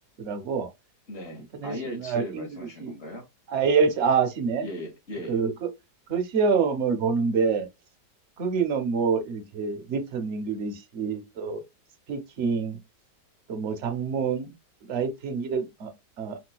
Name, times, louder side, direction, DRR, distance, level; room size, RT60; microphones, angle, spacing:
voice 1, 0.2-0.7 1.6-2.9 3.5-4.7 5.3-5.7 6.1-7.7 8.4-11.6 12.1-12.8 13.5-14.5 14.8-15.9 16.2-16.4, right 5 dB, 60° right, 0.8 m, -26 dB
voice 2, 1.1-3.2 4.6-5.4, left 1 dB, 40° left, 1.2 m, -38 dB
4.0 x 2.4 x 2.2 m
omnidirectional pair, 1.8 m